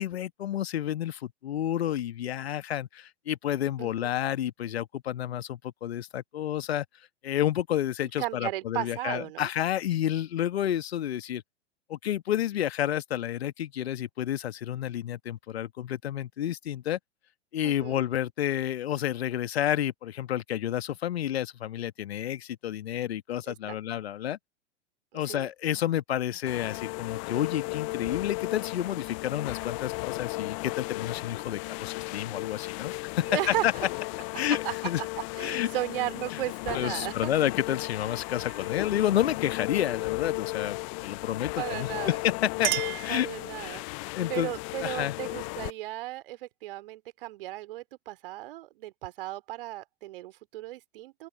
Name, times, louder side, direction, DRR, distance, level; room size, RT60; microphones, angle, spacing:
voice 1, 0.0-6.8 7.2-11.4 11.9-17.0 17.5-24.4 25.1-33.4 33.6-33.7 34.3-35.0 35.4-35.7 36.3-36.4 36.7-42.7 43.0-43.3 43.6-43.8 44.1-44.5 44.8-45.1, left 11 dB, 60° left, 1.5 m, -30 dB
voice 2, 3.8-4.1 8.2-9.5 17.6-18.0 23.5-23.8 25.3-25.5 33.3-33.7 34.3-34.7 35.4-37.3 41.6-42.2 43.1-43.8 44.3-51.3, right 16 dB, 50° right, 3.0 m, -35 dB
sound 1, 26.5-45.7, left 32 dB, 30° left, 0.6 m, -35 dB
Chink clink, 42.1-43.9, right 17 dB, 25° right, 1.6 m, -34 dB
open air
figure-of-eight pair, 100°, 36 cm